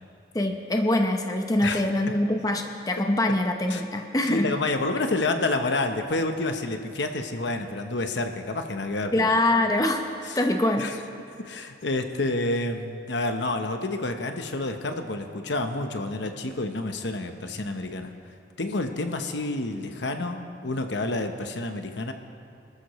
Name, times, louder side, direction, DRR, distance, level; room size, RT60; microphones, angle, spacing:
voice 1, 0.3-4.5 9.1-10.0 10.3-10.9, left 1 dB, 20° left, 3 dB, 0.7 m, -24 dB
voice 2, 4.3-9.3 10.3-10.4 10.8-11.0 11.4-18.1 18.6-22.1, left 2 dB, 70° left, 6 dB, 1.0 m, -29 dB
26.0 x 13.5 x 3.2 m, 2.5 s
head